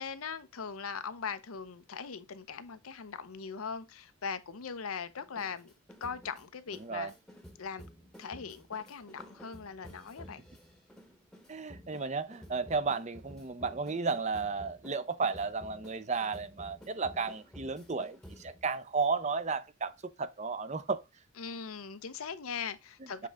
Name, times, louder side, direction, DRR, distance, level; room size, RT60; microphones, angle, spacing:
voice 1, 0.0-5.7 6.0-7.1 7.6-7.9 8.2-10.4 21.4-23.3, left 6 dB, 90° left, 0.7 m, -40 dB
sound 1, 5.2-18.6, equal, 5° left, 1.0 m, -52 dB
voice 2, 6.8-7.1 11.5-21.0 23.2-23.3, right 4 dB, 35° right, 0.6 m, -33 dB
7.5 x 3.7 x 3.5 m
head